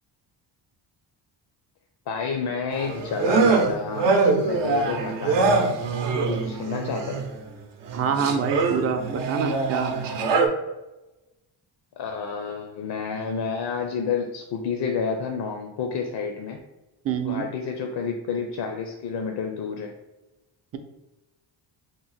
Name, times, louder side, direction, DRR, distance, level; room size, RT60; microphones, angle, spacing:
voice 1, 2.1-5.7 6.3-7.2 12.0-16.6 17.2-19.9, left 5 dB, 60° left, 3 dB, 0.5 m, -30 dB
sound 1, 2.7-7.4 7.8-10.5, right 4 dB, 65° right, 0.7 m, -24 dB
voice 2, 7.9-9.9 17.0-17.5, right 6 dB, 35° right, 6 dB, 0.4 m, -26 dB
3.0 x 2.0 x 4.0 m, 1.0 s
cardioid pair, 95°, 45 cm